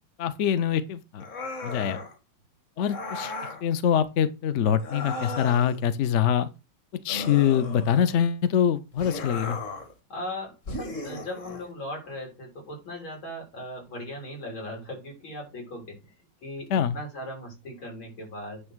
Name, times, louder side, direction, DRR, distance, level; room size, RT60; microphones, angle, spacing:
voice 1, 0.2-1.2 1.6-2.0 2.8-3.3 3.6-6.5 7.0-9.6 16.7-17.0, left 9 dB, 60° left, 0.7 m, -24 dB
sound 1, 1.2-2.1 2.8-3.6 4.8-5.8 7.1-8.2 9.0-9.9 10.7-11.7, left 2 dB, 40° left, 2.0 m, -36 dB
voice 2, 1.8-2.1 10.1-16.1 16.4-18.6, left 1 dB, 80° left, 4.9 m, -38 dB
9.7 x 3.5 x 6.1 m
omnidirectional pair, 2.2 m